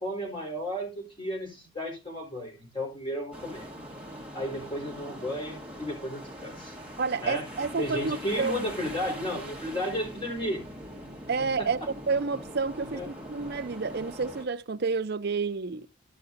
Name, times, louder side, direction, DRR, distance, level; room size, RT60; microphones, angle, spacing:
voice 1, 0.0-3.7 4.3-6.7 7.2-7.5 7.8-10.6 11.6-11.7 12.8-13.1, equal, 25° left, 4.6 m, -33 dB
sound 1, 3.3-14.5, equal, 5° right, 1.7 m, -42 dB
voice 2, 7.0-8.6 11.3-11.8 12.1-15.9, right 4 dB, 50° right, 0.6 m, -29 dB
13.5 x 6.7 x 2.7 m
head